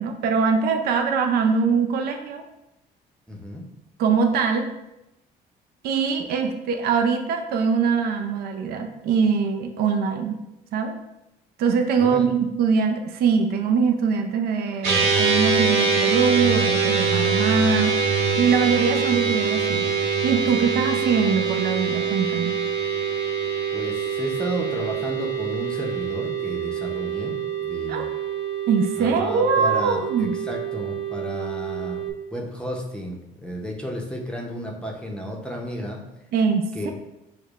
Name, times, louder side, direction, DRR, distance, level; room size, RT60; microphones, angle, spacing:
voice 1, 0.0-2.4 4.0-4.7 5.8-10.4 10.7-11.0 11.6-18.0 18.4-19.9 20.2-22.6 27.9-28.0 28.7-30.4 36.3-36.9, right 5 dB, 65° right, 4 dB, 0.4 m, -22 dB
voice 2, 3.3-3.6 12.0-12.3 23.7-28.1 29.0-32.0 32.3-36.0 36.7-36.9, equal, 5° left, -1 dB, 0.6 m, -33 dB
sound 1, 14.8-32.1, right 5 dB, 85° right, 0.9 m, -24 dB
6.4 x 2.2 x 2.4 m, 0.91 s
cardioid pair, 110°, 17 cm